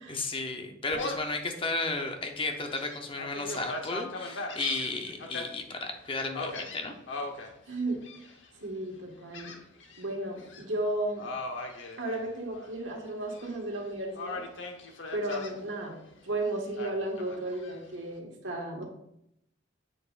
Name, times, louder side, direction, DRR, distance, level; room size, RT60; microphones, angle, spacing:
voice 1, 0.1-6.9, left 3 dB, 30° left, 4 dB, 0.7 m, -33 dB
Gull seagull, 0.9-1.4 1.9-2.0 2.5-5.5 6.3-7.5 8.0-8.5 9.3-10.0 10.4-10.6 11.2-12.7 13.1-13.8 14.2-15.5 16.8-17.8, left 2 dB, 75° left, 1.0 m, -39 dB
voice 2, 7.7-8.2 8.6-9.6 10.0-11.3 12.0-14.4 15.1-16.0 16.2-18.8, right 1 dB, 80° right, 1 dB, 1.6 m, -34 dB
7.7 x 6.7 x 2.5 m, 0.76 s
head